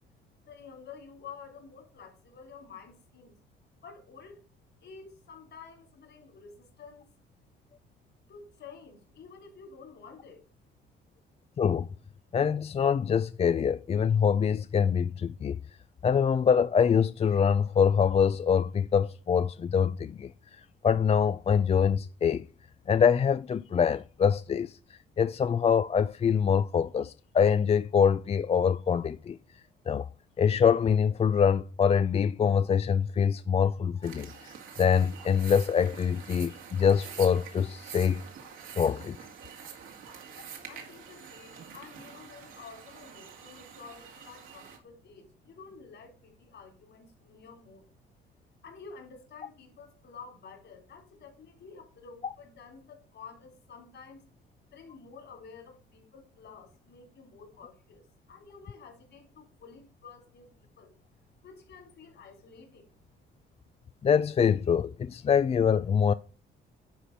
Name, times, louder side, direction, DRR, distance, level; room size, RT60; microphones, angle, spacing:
voice 1, 0.4-3.4 3.8-4.4 4.8-7.1 8.3-10.4 40.7-47.9 48.6-54.3 54.7-60.9 61.4-62.9, left 5 dB, 65° left, 4.0 m, -50 dB
voice 2, 11.6-11.9 12.3-15.6 16.0-20.3 20.8-22.4 22.9-24.8 25.2-29.4 29.9-30.1 30.4-38.2 38.8-39.2 64.0-66.1, left 7 dB, 30° left, 0.4 m, -24 dB
sound 1, 34.0-44.8, right 7 dB, 85° right, 2.3 m, -46 dB
10.0 x 4.3 x 6.1 m
cardioid pair, 90°, 20 cm